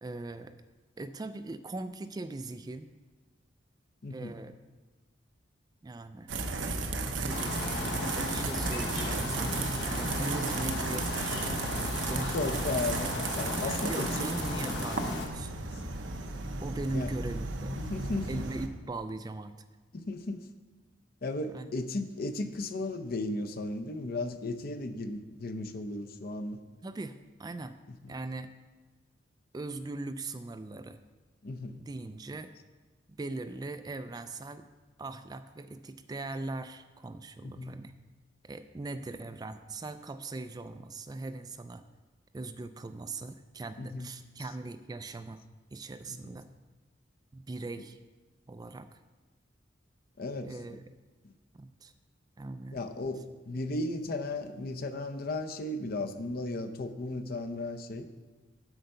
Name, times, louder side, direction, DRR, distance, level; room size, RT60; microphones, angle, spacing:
voice 1, 0.0-0.5 1.0-2.9 4.1-4.5 5.8-6.4 7.2-12.4 13.6-15.5 15.8-15.9 16.6-17.9 18.3-19.6 21.5-21.7 26.8-27.8 28.1-28.5 29.5-31.0 31.8-32.5 33.2-34.7 35.0-37.9 38.4-41.8 42.3-45.4 45.7-46.5 47.3-48.0 48.5-48.9 50.4-50.8 51.5-51.9 52.4-52.8, right 2 dB, 20° right, 10 dB, 0.3 m, -40 dB
voice 2, 4.0-4.3 9.0-9.1 12.3-14.1 16.9-17.1 17.7-18.4 19.9-20.5 21.2-26.6 27.9-28.1 31.4-31.7 37.4-37.7 43.8-44.1 46.1-46.2 50.2-50.8 51.2-51.3 52.7-53.2 53.4-58.1, left 2 dB, 55° left, 7 dB, 0.7 m, -35 dB
sound 1, 6.3-18.7, right 3 dB, 85° right, 0.8 m, -34 dB
sound 2, 7.3-15.3, left 3 dB, 70° left, 1.2 m, -36 dB
7.9 x 7.7 x 5.5 m, 1.2 s
head